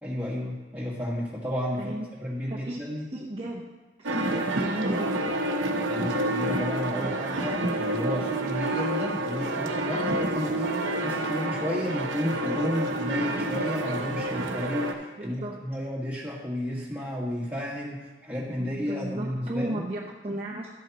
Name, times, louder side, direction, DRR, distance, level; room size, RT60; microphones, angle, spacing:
voice 1, 0.0-3.1 5.9-19.8, equal, 10° right, -5 dB, 1.8 m, -32 dB
voice 2, 1.8-2.1 2.5-2.8 3.1-3.7 4.0-5.3 15.2-15.6 18.6-20.7, right 1 dB, 30° right, -4 dB, 0.8 m, -34 dB
sound 1, 4.0-14.9, right 1 dB, 85° right, 1.0 m, -29 dB
12.5 x 7.8 x 3.0 m, 1.1 s
head